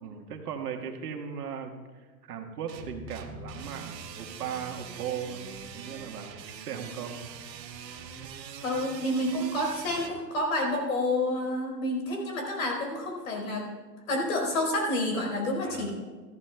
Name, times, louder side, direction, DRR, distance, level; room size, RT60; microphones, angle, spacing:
voice 1, 0.0-7.2 15.6-15.9, right 7 dB, 70° right, 3 dB, 1.7 m, -38 dB
sound 1, 2.7-10.1, right 6 dB, 85° right, 1.7 m, -43 dB
voice 2, 8.6-13.7 14.1-15.9, left 1 dB, 55° left, 0 dB, 4.6 m, -29 dB
19.0 x 14.0 x 2.3 m, 1.4 s
hypercardioid pair, 180°, 49 cm